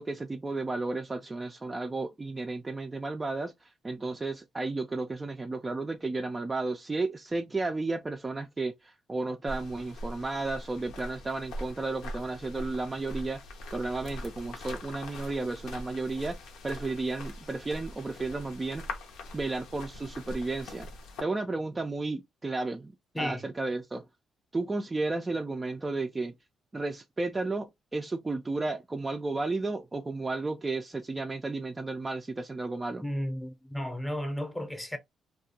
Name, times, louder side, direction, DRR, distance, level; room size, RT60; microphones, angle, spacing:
voice 1, 0.0-13.4 13.7-18.9 19.3-20.9 21.2-22.9 23.2-24.1 24.5-26.3 26.7-33.1, right 3 dB, 20° right, 0.3 m, -33 dB
sound 1, 9.5-21.2, left 1 dB, 85° left, 0.7 m, -42 dB
voice 2, 23.1-23.5 33.0-35.0, equal, 10° left, 0.7 m, -33 dB
2.3 x 2.3 x 2.7 m
cardioid pair, 90°, 0 cm